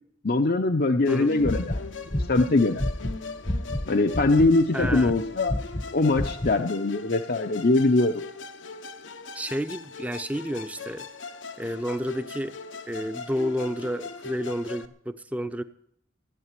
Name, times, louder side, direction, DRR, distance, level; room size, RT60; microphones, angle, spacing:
voice 1, 0.2-1.8 2.2-2.8 3.9-5.6 5.9-8.2, left 2 dB, 50° left, 6 dB, 0.7 m, -22 dB
Musical instrument, 1.0-14.9, left 4 dB, 80° left, 1.0 m, -39 dB
sound 1, 1.4-3.9 4.1-4.5 4.8-5.2 5.5-5.9 6.1-6.5, left 1 dB, 25° left, 0.8 m, -29 dB
voice 2, 4.7-5.1 9.3-11.1 11.6-12.5 12.9-15.6, equal, 10° right, 11 dB, 0.7 m, -30 dB
15.5 x 8.4 x 9.7 m, 0.70 s
head